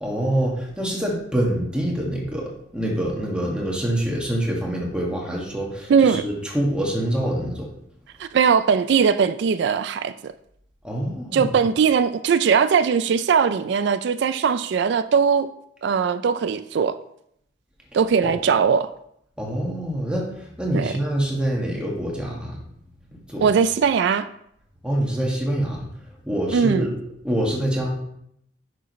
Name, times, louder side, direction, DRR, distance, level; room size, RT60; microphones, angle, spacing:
voice 1, 0.0-7.7 10.8-11.5 19.4-22.6 23.3-23.5 24.8-25.9 26.2-26.9 27.2-27.9, right 1 dB, 5° right, 1.7 m, -25 dB
voice 2, 5.9-6.2 8.2-10.3 11.3-15.5 15.8-17.0 17.9-18.9 20.7-20.9 23.4-24.3 26.5-26.9, right 6 dB, 60° right, 0.3 m, -20 dB
10.0 x 6.2 x 3.1 m
head